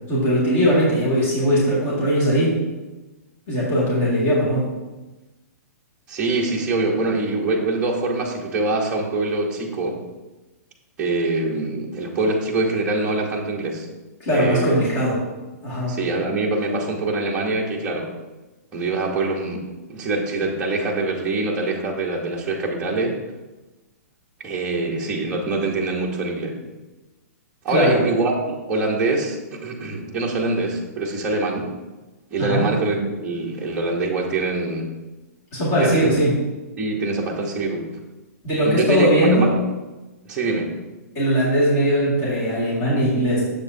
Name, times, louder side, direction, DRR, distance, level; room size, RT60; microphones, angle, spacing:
voice 1, 0.1-2.6 3.5-4.7 14.2-15.2 15.6-16.0 27.7-28.0 32.4-32.7 35.5-36.4 38.4-39.5 41.2-43.4, equal, 25° left, -8 dB, 1.9 m, -19 dB
voice 2, 6.1-10.0 11.0-13.9 14.3-14.8 15.9-18.1 18.7-23.1 24.4-26.6 27.6-31.7 32.3-34.9 35.8-36.1 36.8-37.8 38.6-39.1 39.3-39.5 40.2-40.7, right 2 dB, 10° right, -3 dB, 0.8 m, -24 dB
7.2 x 7.2 x 2.7 m, 1.1 s
hypercardioid pair, 175°, 9 cm